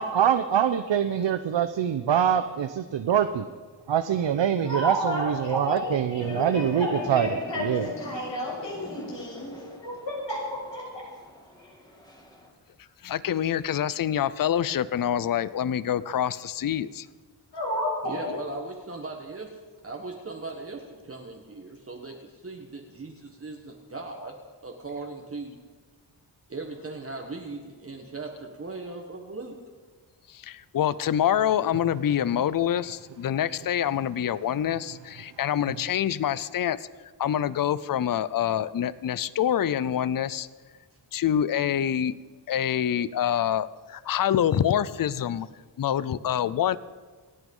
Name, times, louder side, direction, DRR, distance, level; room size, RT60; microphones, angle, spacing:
voice 1, 0.0-3.5 3.9-7.3 7.6-7.9, right 9 dB, 85° right, 9 dB, 0.8 m, -24 dB
voice 2, 4.6-9.5 9.8-11.0 11.6-11.7 17.5-18.4, left 1 dB, 80° left, -3 dB, 6.8 m, -32 dB
sound 1, 6.2-12.5, left 1 dB, 10° left, 2.4 m, -42 dB
voice 3, 13.0-17.1 30.3-36.9 37.2-40.5 41.1-42.1 42.5-45.5 45.8-46.8, left 10 dB, 50° left, 18 dB, 0.5 m, -26 dB
voice 4, 18.0-19.5 19.8-24.4 24.6-25.6 26.5-29.5, right 3 dB, 30° right, 1 dB, 1.5 m, -38 dB
28.0 x 9.4 x 5.4 m, 1.5 s
wide cardioid pair, 135°, 43 cm